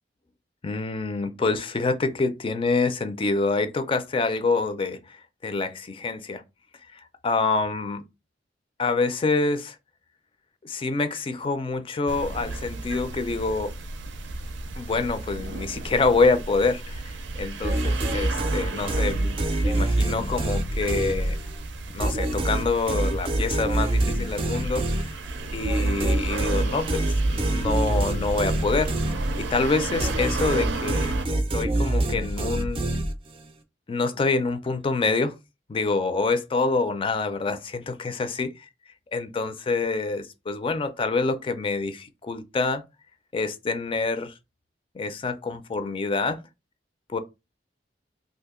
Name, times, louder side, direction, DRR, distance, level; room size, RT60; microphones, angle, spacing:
voice 1, 0.6-6.4 6.9-8.0 8.8-9.8 10.6-13.7 14.8-21.4 21.9-25.1 25.5-28.9 29.4-32.8 33.9-35.4 35.7-38.5 39.1-42.8 43.3-44.3 44.9-46.4 47.1-47.2, left 3 dB, 30° left, 0.4 m, -26 dB
sound 1, 12.1-31.3, right 3 dB, 90° right, 0.5 m, -34 dB
sound 2, 17.6-21.6 22.0-29.6 30.0-33.5, right 1 dB, 30° right, 0.4 m, -26 dB
2.7 x 2.4 x 3.6 m
head